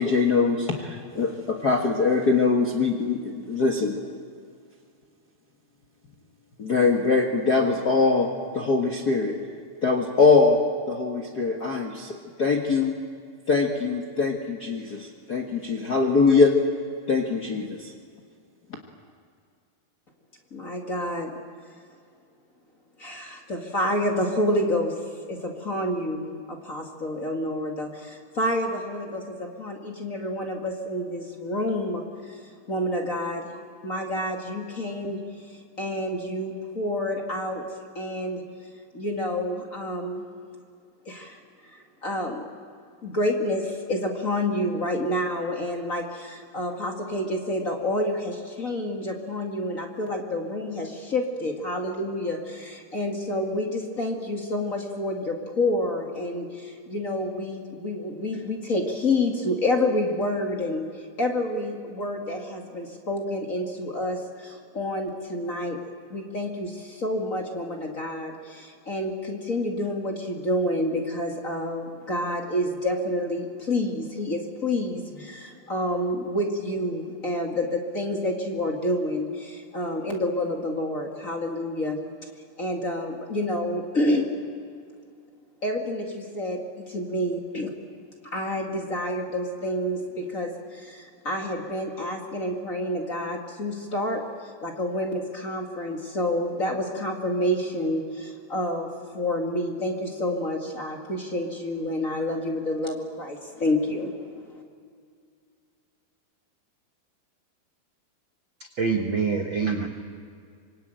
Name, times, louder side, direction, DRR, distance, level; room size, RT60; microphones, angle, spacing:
voice 1, 0.0-4.0 6.6-8.3 8.5-9.3 9.8-10.6 10.9-12.9 13.5-16.5 17.1-17.9, left 4 dB, 80° left, 1 dB, 0.8 m, -22 dB
voice 2, 20.5-21.3 23.0-24.9 25.3-33.6 33.8-35.2 35.8-37.7 37.9-38.4 38.9-40.2 41.0-41.4 41.7-42.5 43.0-60.9 61.2-65.8 66.1-82.0 82.6-84.4 85.6-87.7 88.2-104.6, left 1 dB, 30° left, 1 dB, 1.7 m, -28 dB
voice 3, 108.8-109.9, right 5 dB, 65° right, 3 dB, 1.2 m, -25 dB
25.5 x 23.5 x 9.1 m, 2.2 s
omnidirectional pair, 4.5 m